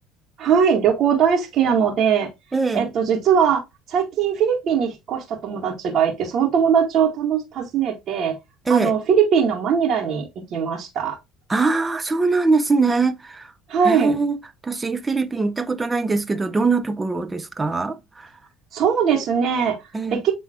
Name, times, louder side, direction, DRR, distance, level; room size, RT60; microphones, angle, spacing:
voice 1, 0.4-2.3 2.7-3.6 3.9-8.4 8.7-11.2 13.7-14.2 18.7-19.8 20.1-20.3, right 7 dB, 55° right, 2.1 m, -20 dB
voice 2, 2.5-2.9 8.7-8.9 11.5-13.5 13.8-18.3 19.9-20.2, right 4 dB, 20° right, 0.9 m, -22 dB
8.9 x 3.6 x 3.1 m
supercardioid pair, 85°, 0 cm